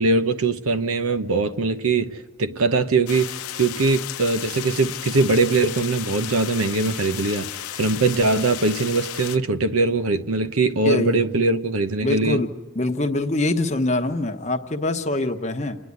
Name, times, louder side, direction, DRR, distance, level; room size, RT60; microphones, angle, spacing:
voice 1, 0.0-3.3 3.6-7.5 7.8-12.4, right 3 dB, 80° right, 0.9 m, -21 dB
sound 1, 3.1-9.4, left 11 dB, 85° left, 0.7 m, -34 dB
voice 2, 10.8-11.2 12.0-15.8, left 2 dB, 30° left, 1.0 m, -24 dB
29.0 x 9.8 x 9.4 m
head